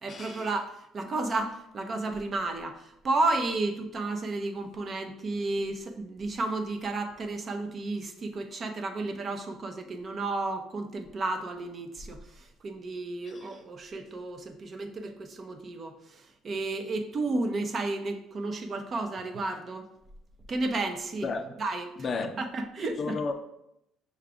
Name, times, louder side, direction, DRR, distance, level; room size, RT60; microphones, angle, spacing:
voice 1, 0.0-19.9 20.5-21.9 22.4-23.2, right 2 dB, 40° right, 0.6 m, -32 dB
voice 2, 22.0-22.4 23.0-23.3, left 4 dB, 40° left, 0.5 m, -32 dB
5.8 x 2.4 x 3.5 m
cardioid pair, 95°, 0 cm